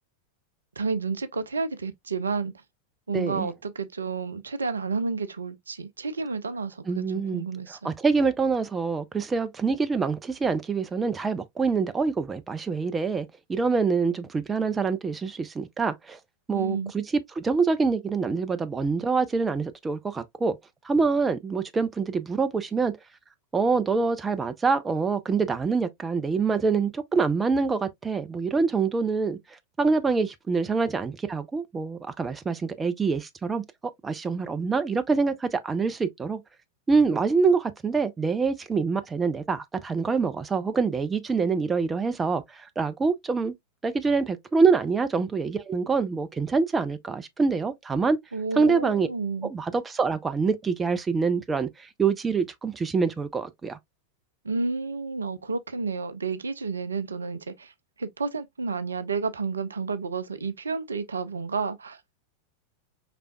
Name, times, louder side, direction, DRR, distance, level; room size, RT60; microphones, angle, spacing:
voice 1, 0.8-2.5 3.1-7.9 16.5-16.9 48.3-49.5 54.4-57.7 58.0-62.0, right 4 dB, 75° right, 0.5 m, -31 dB
voice 2, 3.1-3.5 6.9-16.2 16.5-20.6 20.8-22.9 23.5-29.4 29.8-33.6 34.0-36.4 36.9-43.5 43.8-48.2 48.6-49.1 49.4-53.8, right 4 dB, 15° right, 0.5 m, -25 dB
5.0 x 3.3 x 2.2 m
figure-of-eight pair, 90°, 0 cm